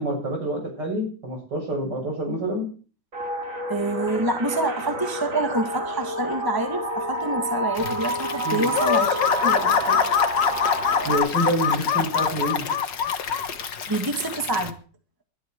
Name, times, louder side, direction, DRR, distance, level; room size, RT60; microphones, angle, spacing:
voice 1, 0.0-2.7 8.4-8.7 11.0-12.7, right 1 dB, 70° right, 1 dB, 7.9 m, -27 dB
sound 1, 3.1-11.2, right 1 dB, 45° right, 3.0 m, -29 dB
voice 2, 3.7-10.1 13.9-14.7, right 2 dB, 10° right, 5 dB, 2.0 m, -27 dB
Stream / Liquid, 7.7-14.7, left 6 dB, 65° left, 1.9 m, -35 dB
sound 2, 8.7-13.5, left 7 dB, 80° left, 2.0 m, -23 dB
20.5 x 12.0 x 4.6 m, 0.40 s
omnidirectional pair, 1.9 m